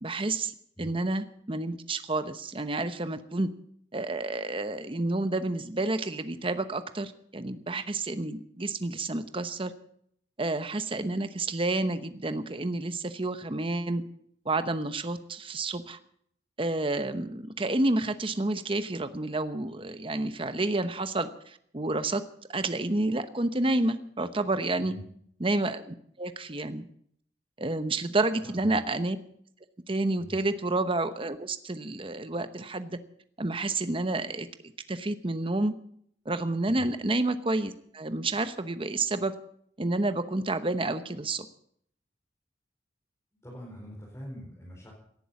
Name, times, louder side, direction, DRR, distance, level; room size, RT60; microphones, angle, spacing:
voice 1, 0.0-3.5 3.9-9.7 10.4-14.0 14.4-16.0 16.6-22.2 22.5-24.9 25.4-26.8 27.6-29.2 29.9-33.0 33.4-35.7 36.3-39.3 39.8-41.4, right 2 dB, 30° right, 10 dB, 0.9 m, -30 dB
voice 2, 28.4-28.8 30.2-30.4 36.7-36.9 43.4-44.9, equal, 15° left, -4 dB, 4.4 m, -44 dB
18.0 x 11.0 x 7.1 m, 0.68 s
head